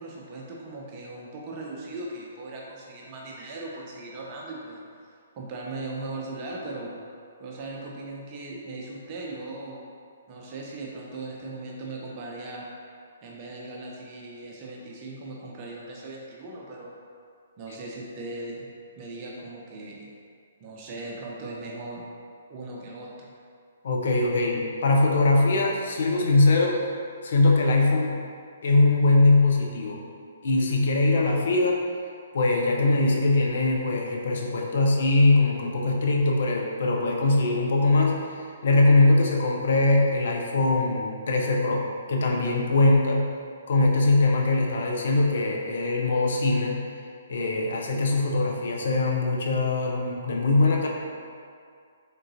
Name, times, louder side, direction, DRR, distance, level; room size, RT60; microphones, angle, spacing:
voice 1, 0.0-7.0 7.4-9.8 10.3-12.6 13.2-16.9 17.6-18.7 19.0-20.1 20.6-22.1 22.5-23.3, right 2 dB, 35° right, -3 dB, 0.6 m, -38 dB
voice 2, 23.8-26.8 27.2-28.2 28.6-30.0 30.4-31.8 32.3-43.3 43.7-46.8 47.3-50.9, left 2 dB, 55° left, -1 dB, 0.6 m, -22 dB
3.7 x 3.7 x 2.7 m, 2.2 s
figure-of-eight pair, 125°, 0 cm